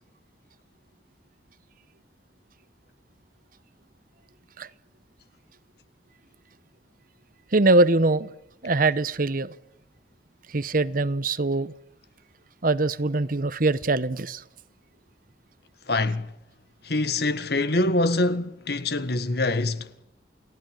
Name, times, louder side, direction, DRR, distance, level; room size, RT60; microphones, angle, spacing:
voice 1, 7.5-8.3 8.6-9.5 10.5-11.7 12.6-14.4, right 2 dB, 50° right, 1.0 m, -22 dB
voice 2, 15.9-16.3 16.8-19.9, left 2 dB, 65° left, 1.5 m, -24 dB
29.5 x 18.5 x 9.0 m
head